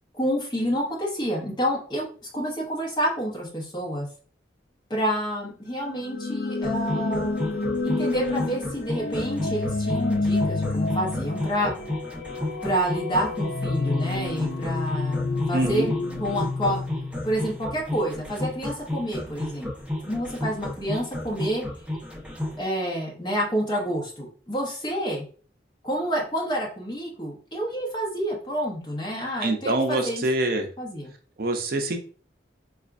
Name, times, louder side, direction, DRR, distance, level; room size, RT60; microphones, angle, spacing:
voice 1, 0.1-4.1 4.9-7.3 7.8-11.7 12.6-15.9 16.2-16.8 17.2-21.6 22.5-25.2 25.8-30.2 30.8-31.1, equal, 25° left, -1 dB, 1.0 m, -28 dB
sound 1, 5.8-17.7, left 3 dB, 85° left, 0.4 m, -29 dB
sound 2, 6.6-22.6, left 1 dB, 5° right, 0.6 m, -32 dB
voice 2, 15.5-15.9 29.4-30.7 31.4-32.0, right 2 dB, 55° right, 4 dB, 0.5 m, -25 dB
4.3 x 2.4 x 2.4 m, 0.40 s
head